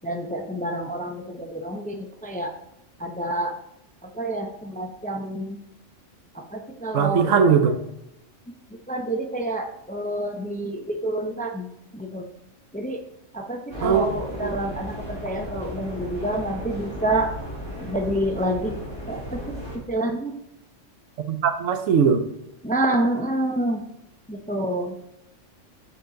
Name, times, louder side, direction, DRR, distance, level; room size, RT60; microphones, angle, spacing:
voice 1, 0.0-2.5 3.0-3.6 4.0-5.6 6.3-7.8 8.9-12.3 12.7-13.0 13.3-17.3 17.8-18.8 19.1-20.3 22.6-23.8 24.3-25.0, right 1 dB, 10° left, 4 dB, 0.4 m, -28 dB
voice 2, 6.9-7.8 13.8-14.1 14.4-14.5 21.3-22.3, right 6 dB, 85° right, 8 dB, 1.1 m, -20 dB
sound 1, 13.7-19.8, equal, 45° right, 2.5 m, -35 dB
7.9 x 4.5 x 3.9 m, 0.83 s
omnidirectional pair, 1.3 m